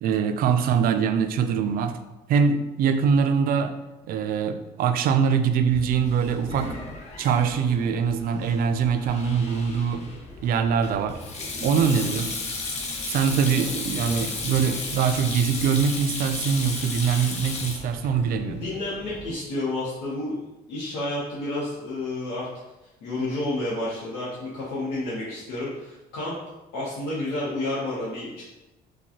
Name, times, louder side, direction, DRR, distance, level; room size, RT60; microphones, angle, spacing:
voice 1, 0.0-2.0 2.3-3.7 4.1-6.8 7.2-10.1 10.4-11.2 11.6-12.4 13.1-18.6, right 6 dB, 60° right, 8 dB, 0.4 m, -23 dB
Sink (filling or washing), 5.6-19.3, left 3 dB, 40° left, 0.7 m, -34 dB
voice 2, 13.5-14.2 18.4-20.4 20.7-22.5 23.0-26.4 26.7-28.4, left 2 dB, 85° left, -7 dB, 0.9 m, -30 dB
4.6 x 2.3 x 2.8 m, 1.0 s
cardioid pair, 110°, 17 cm